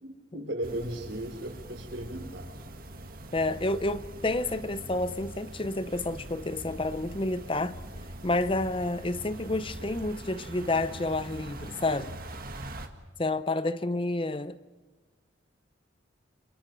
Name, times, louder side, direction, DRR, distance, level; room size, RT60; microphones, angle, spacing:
voice 1, 0.0-2.5, right 1 dB, 80° right, 4.2 m, -36 dB
sound 1, 0.6-12.9, right 1 dB, 50° right, 1.8 m, -43 dB
voice 2, 3.3-7.7 8.2-12.1 13.2-14.6, left 2 dB, 30° left, 0.7 m, -29 dB
29.0 x 27.5 x 4.8 m
head